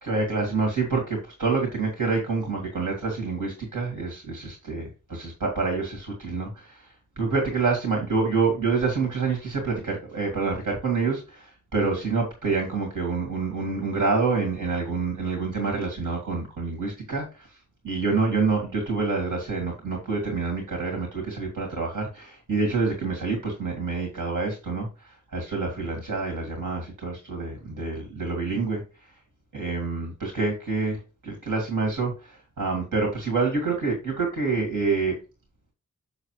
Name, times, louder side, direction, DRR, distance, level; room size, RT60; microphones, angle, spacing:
voice 1, 0.0-29.2 29.5-35.2, right 4 dB, 80° right, 0 dB, 2.3 m, -27 dB
6.8 x 6.6 x 3.1 m, 0.31 s
wide cardioid pair, 80°, 31 cm